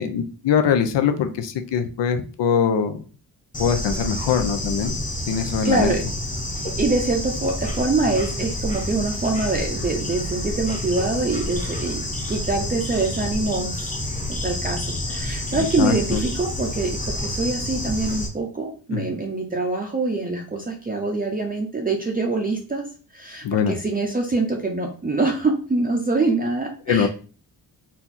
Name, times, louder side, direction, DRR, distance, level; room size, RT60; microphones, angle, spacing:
voice 1, 0.0-3.0 3.6-5.0 5.3-5.9 15.5-16.2 18.9-19.1 23.4-23.8 26.9-27.1, left 7 dB, 85° left, 7 dB, 0.7 m, -22 dB
Bird / Insect, 3.5-18.3, left 1 dB, 20° left, 0.8 m, -29 dB
voice 2, 5.6-6.0 6.6-13.9 14.3-22.8 23.1-27.1, right 3 dB, 20° right, 1 dB, 0.5 m, -25 dB
4.3 x 2.4 x 4.0 m, 0.39 s
wide cardioid pair, 165°, 41 cm